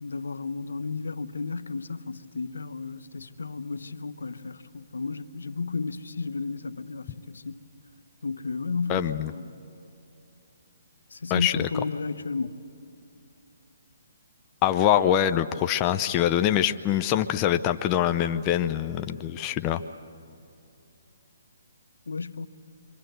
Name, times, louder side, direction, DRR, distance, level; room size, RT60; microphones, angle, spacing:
voice 1, 0.0-7.6 8.2-9.6 11.1-12.6 22.1-22.5, left 4 dB, 90° left, 0.9 m, -33 dB
voice 2, 8.9-9.3 11.3-11.7 14.6-19.8, left 11 dB, 25° left, 0.6 m, -24 dB
27.5 x 25.0 x 7.9 m
hypercardioid pair, 155°, 0 cm